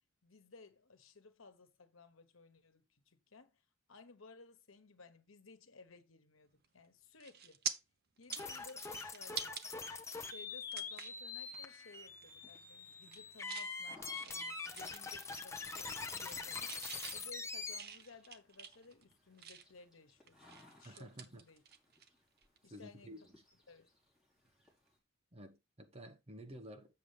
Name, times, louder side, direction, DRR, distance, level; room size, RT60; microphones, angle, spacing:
voice 1, 0.2-3.6 3.9-7.6 8.2-9.6 10.1-16.8 17.1-21.6 22.6-23.1 23.7-23.9, left 4 dB, 85° left, 1.2 m, -58 dB
sound 1, 6.6-6.9 7.2-7.7 8.2-9.7 10.1-10.2 10.7-11.2 11.6-11.8 12.1-12.6 12.9-13.7 14.1-15.4 15.7-16.4 16.7-19.8 20.3-22.1 22.4-22.6 24.5-24.6, right 8 dB, 55° right, 0.9 m, -46 dB
sound 2, 8.3-17.8, left 4 dB, 15° left, 0.8 m, -44 dB
sound 3, 9.9-25.0, left 2 dB, 5° right, 4.0 m, -68 dB
voice 2, 20.8-21.5 22.7-23.2 25.3-27.0, equal, 30° right, 1.2 m, -52 dB
7.4 x 6.8 x 3.3 m
head